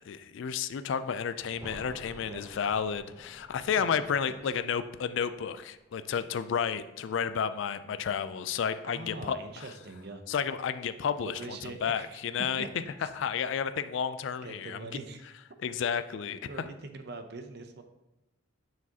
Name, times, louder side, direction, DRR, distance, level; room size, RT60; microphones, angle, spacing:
voice 1, 0.0-9.7 10.3-12.6 13.0-14.8 15.6-16.4, left 7 dB, 60° left, 12 dB, 0.3 m, -31 dB
sound 1, 1.5-7.1 7.3-7.4, equal, 15° right, 0.7 m, -52 dB
voice 2, 2.1-2.6 3.8-3.9 4.3-4.4 8.8-10.2 11.2-12.7 13.0-13.1 14.4-15.2 16.4-17.8, right 3 dB, 50° right, 7 dB, 0.6 m, -43 dB
7.2 x 6.0 x 2.8 m, 0.98 s
head